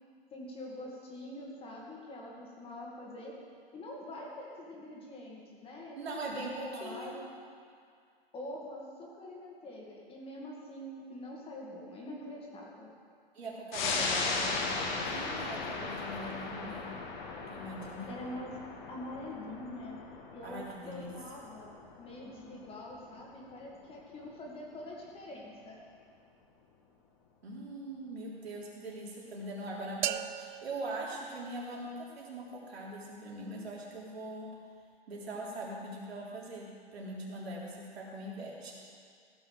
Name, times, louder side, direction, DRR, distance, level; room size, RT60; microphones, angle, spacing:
voice 1, 0.3-3.3 3.7-7.2 8.3-12.9 18.1-18.6 18.9-20.0 20.3-25.8, left 1 dB, 20° left, -2 dB, 2.2 m, -45 dB
voice 2, 6.0-7.2 13.3-16.9 17.5-18.1 20.4-21.2 27.4-34.5 35.1-38.8, right 1 dB, 80° right, -4 dB, 3.6 m, -41 dB
sound 1, 13.7-24.7 25.1-25.2, left 4 dB, 50° left, 2.0 m, -37 dB
sound 2, 30.0-32.0, right 12 dB, 50° right, 0.5 m, -38 dB
15.5 x 6.3 x 6.5 m, 2.2 s
hypercardioid pair, 130°, 31 cm